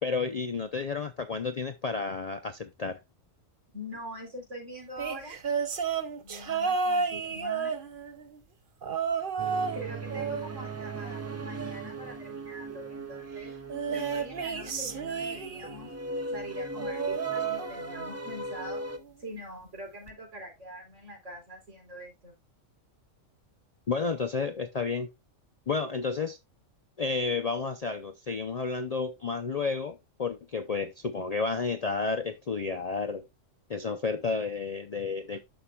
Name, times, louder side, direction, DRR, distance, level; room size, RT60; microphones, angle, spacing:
voice 1, 0.0-3.0 23.9-25.1 25.7-26.4 27.0-33.3 33.7-35.4, left 4 dB, 50° left, 0.5 m, -31 dB
voice 2, 3.7-5.3 6.2-7.8 9.7-13.5 13.9-15.9 16.3-18.8 19.2-22.4, equal, 65° right, 4.0 m, -44 dB
sound 1, 5.0-8.3 8.8-9.8 10.1-11.6 13.7-15.9 16.8-18.3 18.6-19.0 20.1-20.2, right 5 dB, 45° right, 1.0 m, -32 dB
sound 2, 9.4-19.0, right 2 dB, 20° right, 0.4 m, -39 dB
11.0 x 6.0 x 2.3 m
omnidirectional pair, 1.3 m